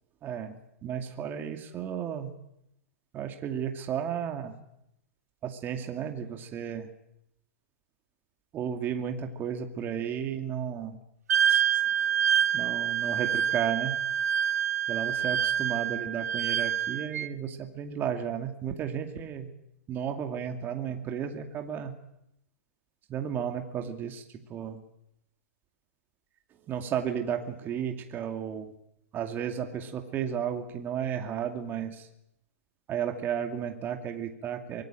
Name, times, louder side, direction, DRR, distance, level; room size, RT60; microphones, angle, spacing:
voice 1, 0.2-0.6 0.8-2.3 3.1-4.6 5.4-6.9 8.5-11.0 11.5-11.8 12.2-14.0 14.9-19.5 19.9-21.9 23.1-24.2 24.5-24.8 26.6-28.7 29.1-32.1 32.9-34.8, right 8 dB, 25° right, 5 dB, 2.5 m, -33 dB
Wind instrument woodwind instrument, 11.3-17.3, right 8 dB, 75° right, 1.2 m, -27 dB
24.5 x 20.0 x 9.0 m, 0.80 s
hypercardioid pair, 135°, 9 cm